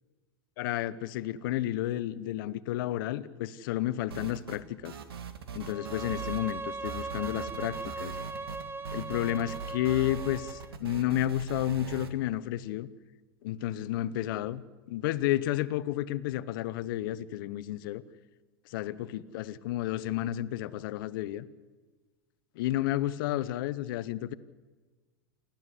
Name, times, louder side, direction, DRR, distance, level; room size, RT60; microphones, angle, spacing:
voice 1, 0.6-4.9 5.5-8.1 8.9-12.9 13.4-14.6 14.9-18.0 18.7-21.4 22.6-24.3, left 14 dB, 60° left, 15 dB, 0.9 m, -31 dB
sound 1, 4.1-4.6 4.9-6.6 6.9-12.1, right 6 dB, 80° right, 1.8 m, -40 dB
Bowed string instrument, 5.6-10.8, right 3 dB, 15° right, 0.9 m, -39 dB
29.0 x 12.0 x 8.2 m, 1.3 s
hypercardioid pair, 95°, 13 cm